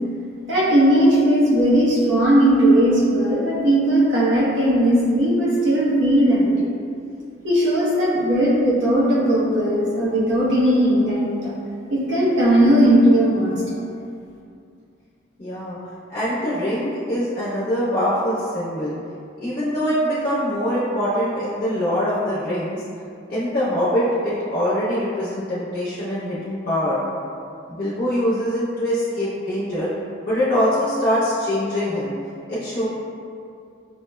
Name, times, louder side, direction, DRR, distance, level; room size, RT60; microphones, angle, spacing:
voice 1, 0.5-6.7 7.4-11.5 11.9-13.8, right 1 dB, 70° right, -7 dB, 0.8 m, -17 dB
voice 2, 15.4-15.8 16.1-18.9 19.4-22.8 23.3-27.0 27.7-29.9 30.2-32.1 32.5-32.9, equal, 50° left, -11 dB, 0.8 m, -23 dB
6.1 x 2.1 x 2.2 m, 2.4 s
head